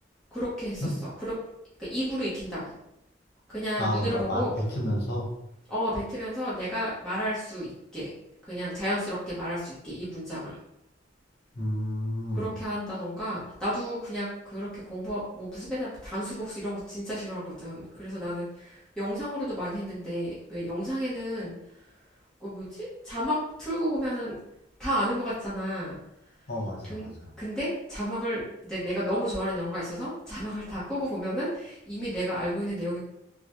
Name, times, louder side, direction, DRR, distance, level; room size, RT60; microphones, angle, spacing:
voice 1, 0.3-0.9 1.2-1.3 1.9-2.8 3.5-4.5 5.7-8.1 8.4-10.5 12.3-21.6 22.4-24.3 24.8-26.0 26.9-27.1 27.4-33.0, equal, 5° left, -11 dB, 1.1 m, -32 dB
voice 2, 3.8-4.4 4.7-5.3 11.5-12.5 26.5-27.3, equal, 60° left, -3 dB, 1.1 m, -30 dB
3.8 x 2.3 x 3.0 m, 0.81 s
head